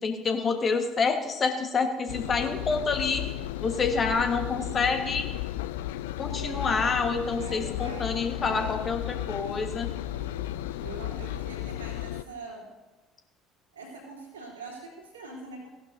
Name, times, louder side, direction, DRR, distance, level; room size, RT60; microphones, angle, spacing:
voice 1, 0.0-3.2 3.6-5.3 6.2-9.9, left 4 dB, 35° left, 6 dB, 1.3 m, -27 dB
Engine, 2.1-12.2, left 14 dB, 65° left, 0.3 m, -34 dB
voice 2, 7.3-8.2 10.1-12.7 13.7-15.7, right 3 dB, 80° right, -4 dB, 3.1 m, -43 dB
16.5 x 11.5 x 2.7 m, 1.1 s
figure-of-eight pair, 55°, 0 cm